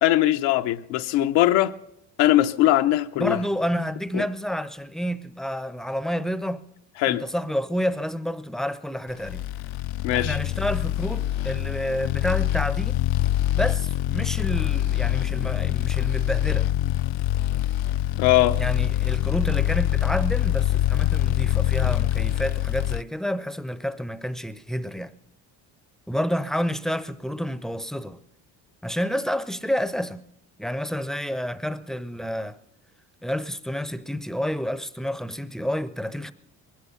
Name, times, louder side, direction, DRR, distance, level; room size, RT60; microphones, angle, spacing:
voice 1, 0.0-1.7 2.2-3.4 4.1-4.2 7.0-7.2 10.0-10.4 18.2-18.6, left 14 dB, 85° left, 0.9 m, -20 dB
voice 2, 3.2-6.7 7.1-9.4 10.1-13.0 13.5-16.7 18.6-25.1 26.1-28.2 28.8-30.2 30.6-32.6 33.2-36.3, equal, ahead, 0.6 m, -29 dB
sound 1, 9.2-23.0, left 14 dB, 60° left, 0.5 m, -24 dB
20.5 x 12.0 x 5.7 m
cardioid pair, 100°, 43 cm